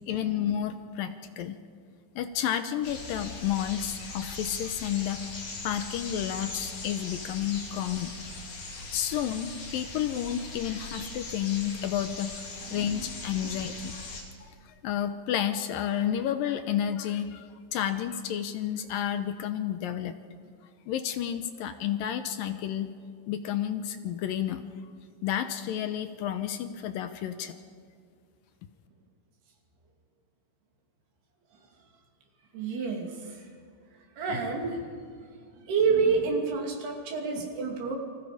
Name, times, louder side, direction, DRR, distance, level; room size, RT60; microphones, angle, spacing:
voice 1, 0.1-1.6 2.2-5.3 5.6-8.1 8.8-14.1 14.4-20.2 20.9-22.9 23.3-24.7 25.2-27.6, left 10 dB, 75° left, 9 dB, 2.4 m, -31 dB
sound 1, 2.8-14.2, left 3 dB, 50° left, 4.4 m, -40 dB
voice 2, 32.5-33.3 34.2-34.8 35.7-38.0, right 5 dB, 80° right, 2 dB, 4.8 m, -28 dB
28.5 x 25.5 x 5.1 m, 2.2 s
omnidirectional pair, 4.5 m